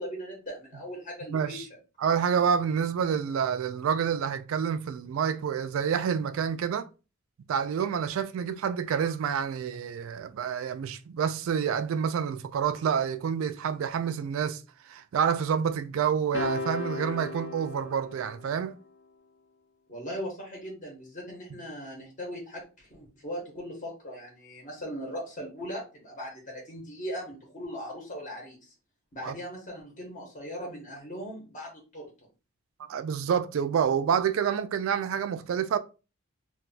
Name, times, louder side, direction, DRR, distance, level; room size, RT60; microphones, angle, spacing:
voice 1, 0.0-1.7 19.9-28.7 29.1-32.1, equal, 40° left, 0.9 m, -39 dB
voice 2, 1.3-1.7 2.0-6.9 7.5-18.8 29.2-29.3 32.8-35.8, right 7 dB, 75° right, 0.3 m, -28 dB
sound 1, 16.3-18.8, left 3 dB, 55° left, 0.4 m, -36 dB
2.2 x 2.2 x 3.9 m
head